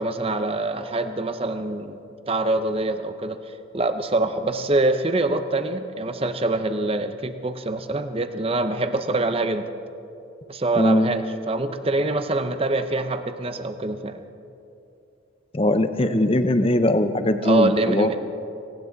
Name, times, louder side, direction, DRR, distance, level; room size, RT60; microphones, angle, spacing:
voice 1, 0.0-2.0 2.3-3.4 3.7-9.7 10.5-14.2 17.4-18.2, right 2 dB, 30° right, 9 dB, 0.7 m, -24 dB
voice 2, 10.8-11.1 15.5-18.2, left 1 dB, 30° left, 9 dB, 0.7 m, -20 dB
18.5 x 18.0 x 4.1 m, 2.7 s
head